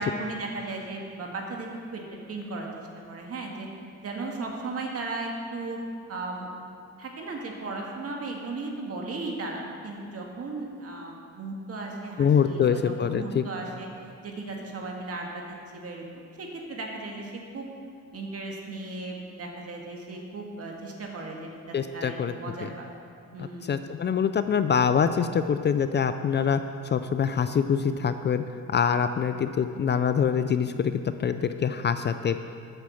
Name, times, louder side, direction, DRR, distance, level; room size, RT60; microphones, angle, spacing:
voice 1, 0.0-3.7 4.0-5.8 6.1-6.5 7.0-13.9 14.2-17.7 18.1-22.9 23.3-23.9, right 2 dB, 50° right, 0 dB, 1.9 m, -36 dB
voice 2, 12.2-13.4 21.7-22.3 22.6-22.7 23.4-28.4 28.7-32.4, left 7 dB, 35° left, 10 dB, 0.4 m, -25 dB
9.0 x 6.3 x 7.6 m, 2.3 s
cardioid pair, 90°, 30 cm